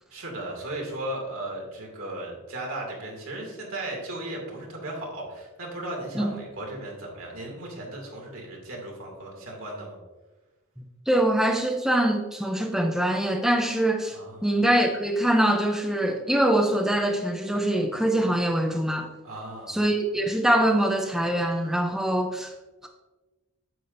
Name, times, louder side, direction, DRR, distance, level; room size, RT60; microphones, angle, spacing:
voice 1, 0.1-10.0 14.1-14.5 19.2-19.8, right 1 dB, 70° right, -1 dB, 2.4 m, -36 dB
voice 2, 11.1-14.2 14.4-19.1 19.7-22.5, right 1 dB, ahead, 2 dB, 0.5 m, -23 dB
9.2 x 7.5 x 2.6 m, 1.2 s
head